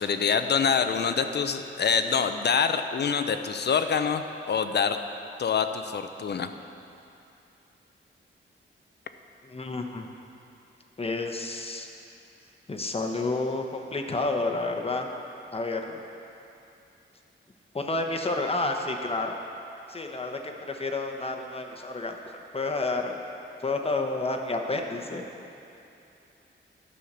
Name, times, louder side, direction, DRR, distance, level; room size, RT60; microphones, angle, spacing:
voice 1, 0.0-5.0 5.4-6.5, left 6 dB, 55° left, 8 dB, 0.6 m, -25 dB
voice 2, 9.4-10.1 11.0-11.9 12.7-15.1 15.5-16.0 17.7-19.4 19.9-22.2 22.5-23.2 23.6-25.2, left 2 dB, 30° left, 3 dB, 0.9 m, -30 dB
11.5 x 5.5 x 6.7 m, 2.8 s
wide cardioid pair, 95°, 21 cm